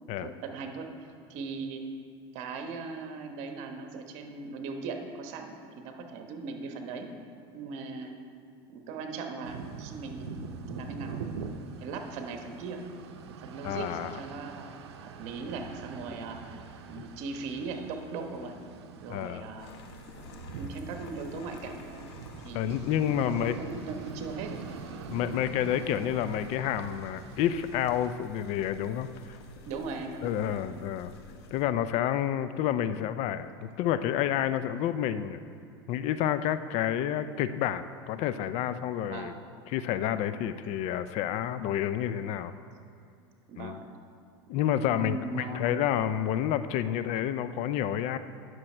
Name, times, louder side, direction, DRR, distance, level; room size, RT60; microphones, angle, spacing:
voice 1, 0.2-0.9 1.3-1.8 2.3-7.1 7.5-8.2 8.7-11.2 11.8-12.8 13.3-14.7 15.0-16.4 16.8-18.5 19.0-19.7 20.1-22.1 22.4-22.6 23.1-24.9 29.7-30.7 39.0-39.4 43.5-43.9 44.9-45.6, right 4 dB, 60° right, 4 dB, 1.1 m, -39 dB
sound 1, 9.4-28.1, right 5 dB, 85° right, 0.6 m, -44 dB
voice 2, 13.6-14.2 17.0-17.1 19.1-19.5 22.5-23.6 25.1-29.4 30.2-31.1 31.5-35.4 35.9-39.3 39.7-42.5 43.6-43.8 44.5-48.2, left 10 dB, 55° left, 12 dB, 0.4 m, -29 dB
sound 2, 19.6-31.6, left 3 dB, 85° left, 0.9 m, -51 dB
9.8 x 6.2 x 4.4 m, 2.5 s
supercardioid pair, 105°, 14 cm